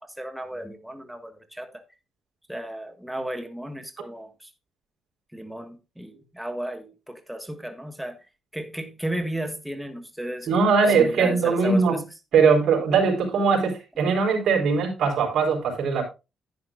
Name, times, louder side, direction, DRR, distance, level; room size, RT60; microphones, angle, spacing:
voice 1, 0.0-1.7 2.5-4.5 5.3-8.2 8.5-12.0, right 1 dB, 5° right, 1.5 m, -34 dB
voice 2, 10.5-12.0 12.3-16.0, right 5 dB, 65° right, 3.9 m, -21 dB
10.5 x 9.8 x 2.4 m
cardioid pair, 90°, 0 cm